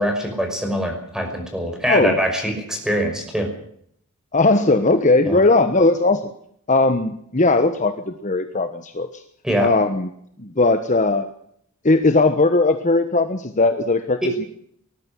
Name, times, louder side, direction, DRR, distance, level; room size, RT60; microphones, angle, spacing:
voice 1, 0.0-3.5 5.2-5.4 9.4-9.7 14.2-14.3, equal, 5° right, 3 dB, 5.7 m, -23 dB
voice 2, 1.9-2.2 4.3-6.2 6.7-9.1 9.6-10.1 10.4-11.3 11.8-14.4, left 2 dB, 35° left, 8 dB, 1.3 m, -18 dB
20.0 x 13.5 x 10.0 m, 0.67 s
head